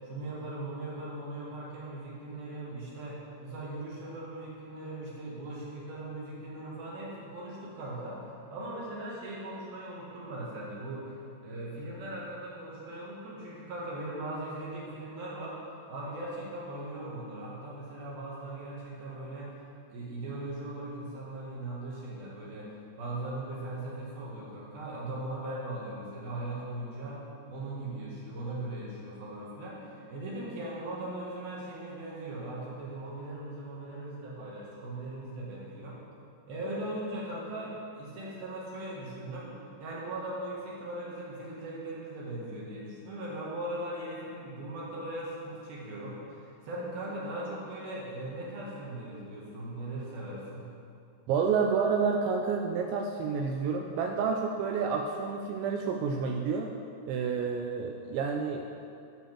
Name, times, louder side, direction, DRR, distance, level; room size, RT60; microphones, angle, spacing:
voice 1, 0.0-15.6 15.9-19.5 19.9-27.2 27.5-36.0 36.5-39.5 39.8-50.7, right 1 dB, 60° right, -5 dB, 3.2 m, -39 dB
voice 2, 51.3-56.7 57.1-58.7, right 5 dB, 90° right, 3 dB, 2.6 m, -29 dB
9.8 x 7.1 x 7.3 m, 2.5 s
omnidirectional pair, 5.8 m